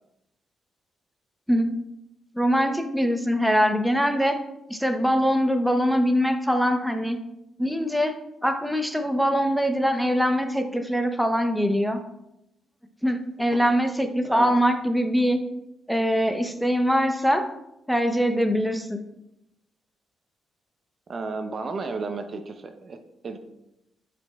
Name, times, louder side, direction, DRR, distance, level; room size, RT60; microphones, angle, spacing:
voice 1, 2.3-4.4 4.7-7.2 7.6-8.2 8.4-12.0 13.0-15.4 15.9-17.5 17.9-19.0, equal, ahead, 5 dB, 0.8 m, -23 dB
voice 2, 21.1-23.4, right 4 dB, 45° right, 7 dB, 0.7 m, -33 dB
11.0 x 5.2 x 2.3 m, 0.86 s
cardioid pair, 85°, 0 cm